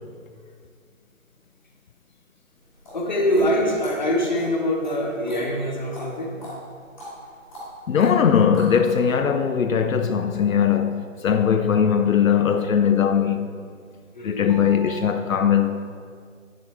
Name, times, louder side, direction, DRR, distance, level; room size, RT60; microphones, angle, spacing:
sound 1, 2.6-8.8, equal, 5° left, 1.3 m, -41 dB
voice 1, 2.9-6.3 14.1-15.4, equal, 35° left, 1.1 m, -25 dB
voice 2, 7.9-13.5 14.2-15.9, left 7 dB, 80° left, 0.6 m, -20 dB
9.4 x 7.5 x 3.3 m
hypercardioid pair, 175°, 40 cm